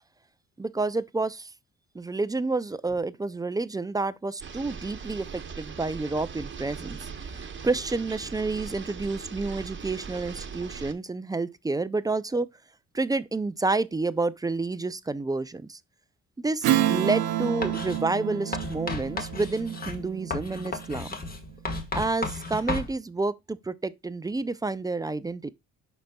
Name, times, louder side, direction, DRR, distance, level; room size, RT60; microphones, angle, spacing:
voice 1, 0.6-1.5 1.9-12.5 12.9-15.8 16.4-21.2 21.9-25.5, right 3 dB, 15° right, 0.3 m, -29 dB
sound 1, 4.4-10.9, right 6 dB, 40° right, 1.0 m, -40 dB
Strum, 16.6-21.5, right 12 dB, 80° right, 0.8 m, -29 dB
Writing, 17.6-18.0 18.5-22.9, left 3 dB, 30° left, 1.4 m, -34 dB
11.0 x 4.1 x 2.2 m
cardioid pair, 90°, 30 cm